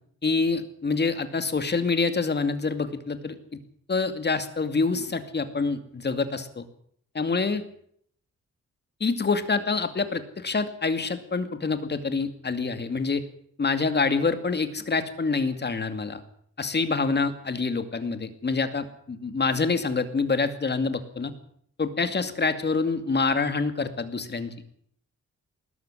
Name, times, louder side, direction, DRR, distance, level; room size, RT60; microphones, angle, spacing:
voice 1, 0.2-3.4 3.9-6.7 7.1-7.6 9.0-13.2 13.6-16.2 16.6-21.3 21.8-24.5, left 4 dB, 35° left, 10 dB, 2.4 m, -26 dB
19.5 x 13.5 x 9.9 m, 0.66 s
wide cardioid pair, 115°, 29 cm